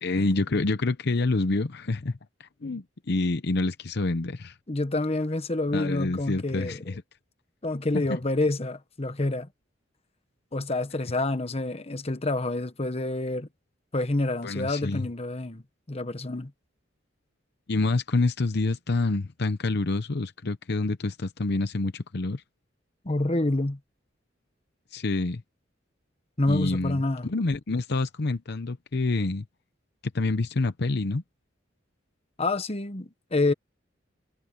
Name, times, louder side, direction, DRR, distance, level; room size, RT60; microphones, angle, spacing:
voice 1, 0.0-4.6 5.7-7.0 8.1-8.2 14.4-15.1 17.7-22.4 24.9-25.4 26.5-29.4 30.1-31.2, left 3 dB, 60° left, 0.8 m, -27 dB
voice 2, 4.7-6.8 7.6-9.5 10.5-13.5 13.9-16.5 23.0-23.8 26.4-27.3 32.4-33.5, left 2 dB, 30° left, 1.2 m, -28 dB
head